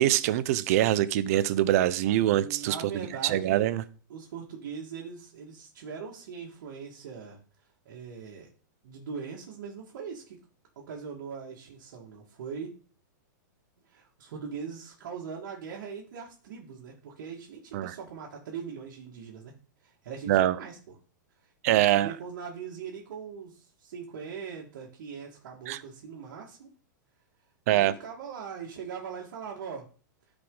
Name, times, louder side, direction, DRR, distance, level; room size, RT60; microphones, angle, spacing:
voice 1, 0.0-2.8 3.2-3.8 17.7-17.9 20.3-20.6 21.6-22.1 25.7-25.8 27.7-27.9, right 13 dB, 50° right, 0.7 m, -24 dB
voice 2, 2.2-3.7 4.1-8.5 8.8-10.4 10.8-12.7 13.8-19.5 19.8-20.9 21.4-26.7 27.7-29.9, right 6 dB, 65° right, 2.0 m, -41 dB
12.5 x 5.0 x 3.9 m
supercardioid pair, 155°, 11 cm